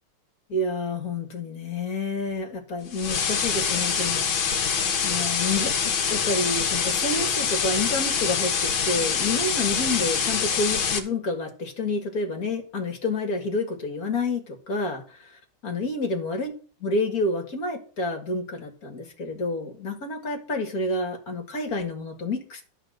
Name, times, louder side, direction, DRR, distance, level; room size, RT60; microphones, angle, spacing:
voice 1, 0.5-4.2 5.0-5.7 6.1-16.5 16.8-22.6, left 2 dB, 45° left, 2.3 m, -29 dB
sound 1, 2.9-11.0, left 6 dB, 65° left, 2.1 m, -25 dB
11.5 x 4.6 x 7.9 m
omnidirectional pair, 2.4 m